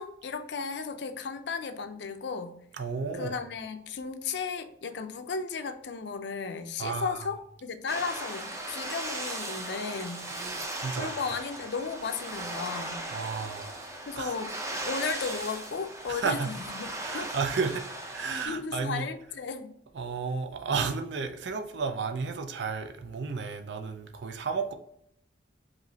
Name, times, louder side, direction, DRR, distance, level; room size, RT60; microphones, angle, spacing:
voice 1, 0.0-2.6 3.1-10.3 10.9-13.0 14.1-14.5 14.9-17.3 18.5-19.7, left 5 dB, 65° left, 0.5 m, -35 dB
voice 2, 2.8-3.4 6.8-7.3 10.3-11.1 13.1-13.8 14.2-14.4 16.1-16.5 17.0-17.8 18.1-19.1 19.9-24.7, right 5 dB, 65° right, 0.5 m, -32 dB
sound 1, 7.9-18.5, right 2 dB, 15° right, 0.5 m, -37 dB
5.0 x 3.0 x 2.7 m
head